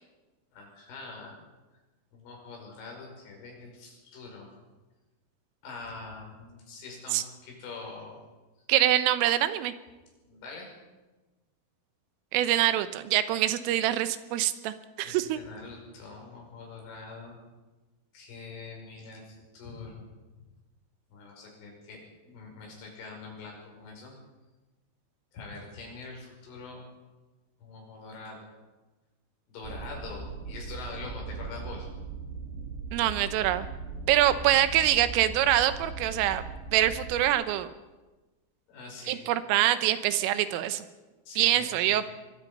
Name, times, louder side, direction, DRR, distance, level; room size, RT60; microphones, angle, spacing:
voice 1, 0.5-1.4 2.1-4.5 5.6-8.2 10.3-10.7 15.0-17.4 18.1-20.1 21.1-24.1 25.3-26.9 27.6-28.5 29.5-31.9 34.3-34.5 38.7-39.2 41.3-42.1, left 3 dB, 70° left, 0 dB, 8.0 m, -44 dB
voice 2, 8.7-9.7 12.3-15.4 32.9-33.7 34.1-36.4 36.7-37.7 39.1-40.8 41.4-42.1, right 13 dB, 80° right, 12 dB, 3.5 m, -25 dB
sound 1, 29.6-37.3, right 4 dB, 55° right, 4.4 m, -39 dB
23.0 x 22.5 x 5.5 m, 1.2 s
omnidirectional pair, 5.8 m